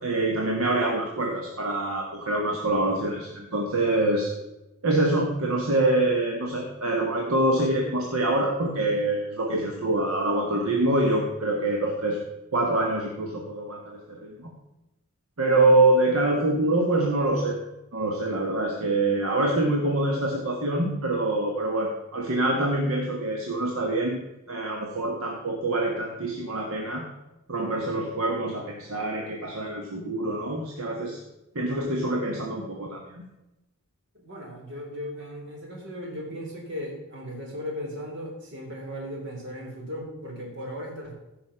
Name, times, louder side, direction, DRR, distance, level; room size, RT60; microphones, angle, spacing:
voice 1, 0.0-4.3 4.8-12.2 12.5-14.5 15.4-17.6 17.9-27.0 27.5-31.2 31.5-33.2, right 2 dB, 70° right, 0 dB, 1.4 m, -25 dB
voice 2, 34.1-41.1, equal, 55° right, 0 dB, 3.4 m, -37 dB
15.0 x 5.8 x 5.7 m, 0.95 s
head